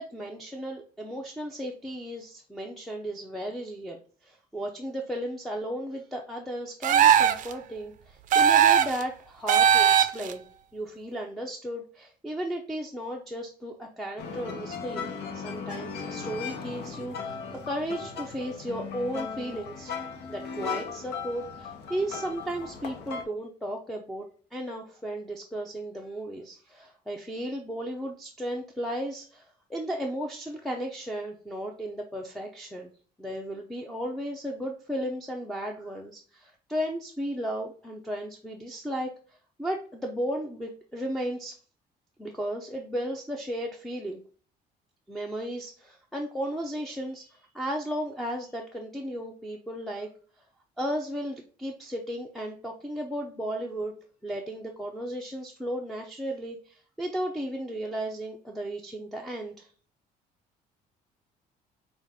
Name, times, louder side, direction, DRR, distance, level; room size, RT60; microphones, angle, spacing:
voice 1, 0.0-10.4 10.7-19.9 20.3-24.2 24.5-32.9 33.2-39.1 39.6-41.6 42.2-44.2 45.1-50.1 50.8-53.9 54.2-59.7, equal, ahead, 1 dB, 0.6 m, -35 dB
sound 1, 6.8-7.5 8.3-9.0 9.5-10.3, right 9 dB, 50° right, 0.4 m, -19 dB
sound 2, 14.2-23.2, left 6 dB, 75° left, 0.9 m, -37 dB
5.6 x 2.4 x 3.6 m, 0.41 s
cardioid pair, 110°, 17 cm